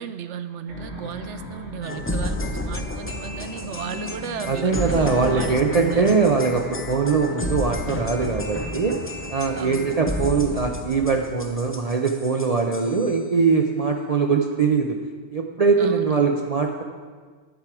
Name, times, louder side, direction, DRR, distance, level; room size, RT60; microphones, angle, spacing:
voice 1, 0.0-6.1 9.6-10.0 15.8-16.2, right 8 dB, 75° right, 10 dB, 0.9 m, -35 dB
sound 1, 0.7-10.8, left 2 dB, 90° left, 2.3 m, -39 dB
sound 2, 1.8-13.2, left 2 dB, 15° left, 0.4 m, -31 dB
voice 2, 4.5-9.0 9.3-15.0 15.3-16.8, right 5 dB, 45° right, 2 dB, 0.5 m, -22 dB
10.5 x 7.4 x 4.7 m, 1.5 s
omnidirectional pair, 1.2 m